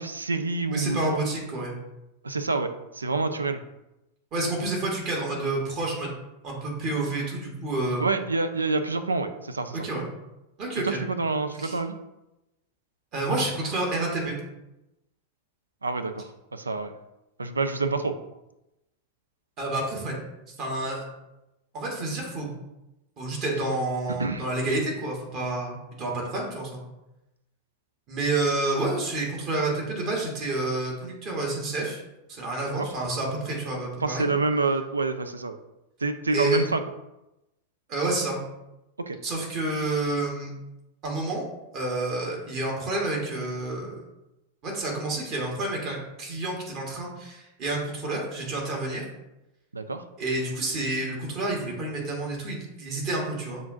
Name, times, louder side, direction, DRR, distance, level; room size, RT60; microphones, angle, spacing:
voice 1, 0.0-1.2 2.2-3.6 8.0-9.8 10.8-12.0 15.8-16.9 17.4-18.1 24.2-24.4 32.8-32.9 34.0-35.6 36.0-36.8 39.0-39.2 49.7-50.0, right 3 dB, 75° right, 9 dB, 0.3 m, -27 dB
voice 2, 0.7-1.8 4.3-6.1 6.4-8.0 9.8-10.1 10.6-11.0 11.6-11.8 13.1-14.4 19.6-20.2 20.6-21.0 21.7-22.5 23.2-26.8 28.1-32.0 32.3-34.3 36.3-36.6 37.9-38.4 39.2-40.5 41.0-41.4 41.7-44.0 44.6-49.0 50.2-53.6, right 2 dB, 40° right, -2 dB, 1.2 m, -29 dB
6.9 x 2.5 x 2.5 m, 0.94 s
figure-of-eight pair, 90°, 0 cm